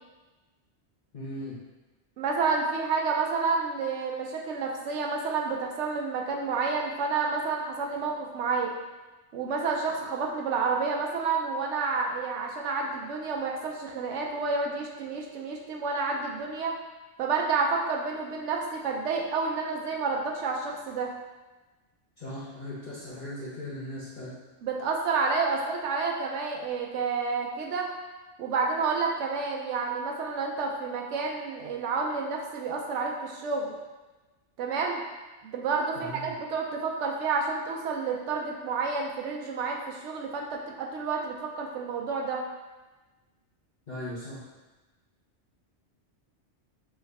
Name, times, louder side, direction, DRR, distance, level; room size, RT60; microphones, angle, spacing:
voice 1, 1.1-1.6 22.2-24.4 35.9-36.3 43.9-44.4, left 1 dB, 45° left, -9 dB, 0.9 m, -38 dB
voice 2, 2.2-8.7 9.3-16.8 17.2-21.1 24.6-27.9 28.4-33.7 34.6-35.0 35.4-42.4, right 4 dB, 85° right, 0 dB, 0.9 m, -29 dB
4.7 x 2.5 x 3.3 m, 1.2 s
omnidirectional pair, 1.2 m